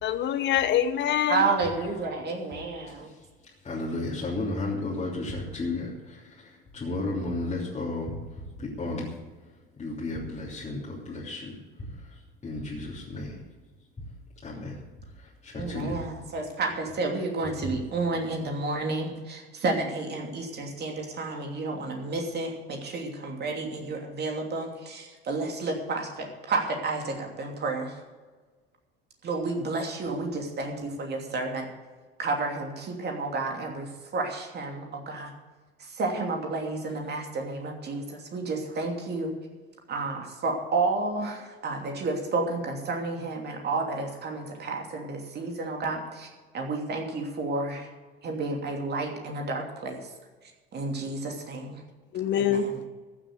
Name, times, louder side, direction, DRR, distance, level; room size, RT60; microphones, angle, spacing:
voice 1, 0.0-1.5 52.1-52.7, left 10 dB, 40° left, 1.1 m, -25 dB
voice 2, 1.3-3.1 15.5-27.9 29.2-31.7 32.2-33.9 34.1-35.3 36.0-39.3 39.9-46.3 46.5-47.9 48.2-50.0 50.7-51.8 52.4-52.7, right 3 dB, 35° right, 2.9 m, -31 dB
voice 3, 3.6-5.9 6.7-8.1 8.8-9.0 9.8-11.5 12.4-13.4 14.4-14.7 15.4-16.0 17.6-17.7, left 2 dB, 20° left, 3.2 m, -32 dB
14.5 x 7.4 x 8.2 m
figure-of-eight pair, 70°, 29 cm